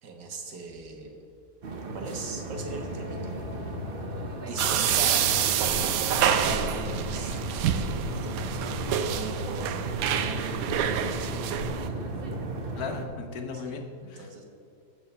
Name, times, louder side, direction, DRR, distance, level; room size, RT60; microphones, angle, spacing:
voice 1, 0.0-1.2 1.9-3.3 4.4-5.3 6.4-7.5 9.1-12.0 13.7-13.8 14.0-14.4, right 3 dB, 85° right, 2 dB, 1.9 m, -39 dB
sound 1, 1.6-13.0, right 3 dB, 45° right, 0.8 m, -36 dB
sound 2, 2.5-12.8, left 7 dB, 85° left, 1.2 m, -40 dB
sound 3, 4.6-11.9, right 9 dB, 70° right, 0.9 m, -27 dB
voice 2, 12.7-14.4, left 4 dB, 65° left, 4 dB, 1.5 m, -37 dB
14.0 x 4.7 x 5.6 m, 2.5 s
omnidirectional pair, 1.8 m